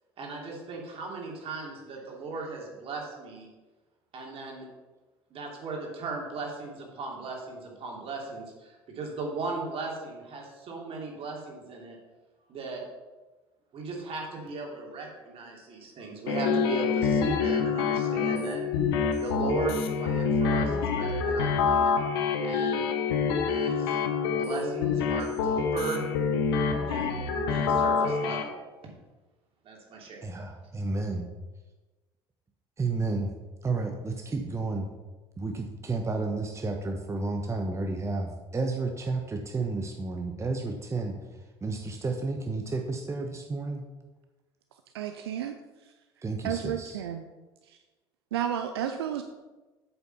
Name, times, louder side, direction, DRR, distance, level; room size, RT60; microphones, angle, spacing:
voice 1, 0.2-3.5 4.1-4.7 5.3-12.0 12.5-12.8 13.7-18.6 19.2-22.0 22.4-22.9 23.5-24.0 24.3-26.1 26.8-28.5 29.6-30.2, right 3 dB, 45° right, -1 dB, 2.9 m, -37 dB
sound 1, 16.3-28.4, left 5 dB, 70° left, 1.0 m, -26 dB
voice 2, 30.2-31.3 32.8-33.3 33.6-34.9 35.4-43.8 46.2-47.0, right 3 dB, 20° right, 4 dB, 1.1 m, -31 dB
voice 3, 44.9-45.6 46.4-47.3 47.7-47.8 48.3-49.2, right 9 dB, 75° right, 7 dB, 0.5 m, -32 dB
8.2 x 7.1 x 5.6 m, 1.2 s
figure-of-eight pair, 60°, 13 cm